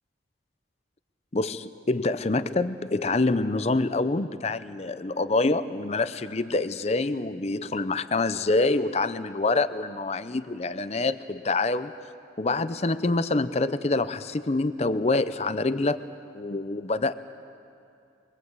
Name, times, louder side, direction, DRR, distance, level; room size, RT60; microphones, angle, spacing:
voice 1, 1.3-11.9 12.4-16.0 16.3-17.1, left 3 dB, 35° left, 13 dB, 0.6 m, -26 dB
23.5 x 21.5 x 8.1 m, 2.6 s
head